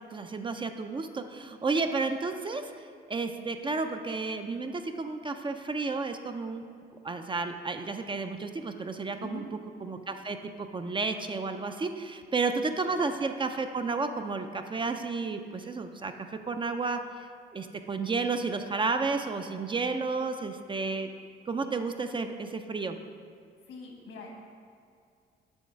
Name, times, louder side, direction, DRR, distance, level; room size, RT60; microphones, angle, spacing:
voice 1, 0.1-2.7 3.1-6.6 7.0-9.4 9.8-16.1 16.5-17.0 17.5-21.1 21.5-23.0, right 4 dB, 25° right, 7 dB, 0.4 m, -32 dB
voice 2, 23.7-24.3, left 4 dB, 80° left, 0 dB, 1.4 m, -43 dB
7.0 x 3.7 x 5.2 m, 2.3 s
cardioid pair, 90°, 20 cm